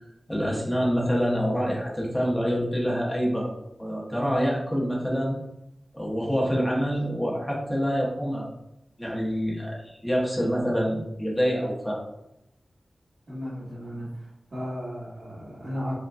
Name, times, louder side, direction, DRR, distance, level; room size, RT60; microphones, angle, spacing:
voice 1, 0.3-3.5 3.8-5.4 5.9-8.5 9.0-12.0, equal, 10° left, -4 dB, 0.8 m, -26 dB
voice 2, 13.3-15.9, equal, 50° right, -11 dB, 1.2 m, -35 dB
4.9 x 2.2 x 2.3 m, 0.87 s
wide cardioid pair, 90°, 0 cm